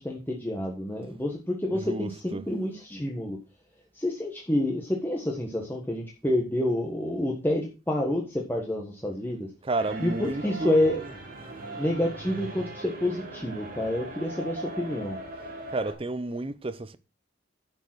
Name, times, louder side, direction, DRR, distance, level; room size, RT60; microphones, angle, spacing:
voice 1, 0.0-3.4 3.9-9.5 10.0-11.0 11.8-15.2, left 1 dB, 10° left, 1.4 m, -28 dB
voice 2, 1.7-2.5 9.6-11.3 11.7-11.9 15.7-17.0, right 2 dB, 25° right, 0.6 m, -32 dB
sound 1, 9.8-15.9, right 2 dB, 45° right, 3.9 m, -39 dB
10.5 x 5.2 x 6.1 m
head